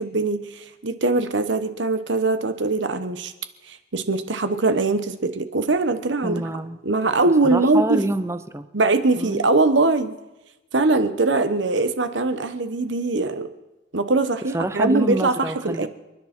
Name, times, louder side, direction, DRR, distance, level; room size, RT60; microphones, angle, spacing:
voice 1, 0.0-3.3 3.7-6.4 6.8-8.0 8.7-10.1 10.7-13.5 13.9-15.9, right 3 dB, 75° right, 10 dB, 1.1 m, -22 dB
voice 2, 6.2-6.8 7.5-8.7 9.2-9.4 14.5-15.9, right 1 dB, 15° right, 12 dB, 0.6 m, -26 dB
29.5 x 10.5 x 4.4 m, 1.0 s
head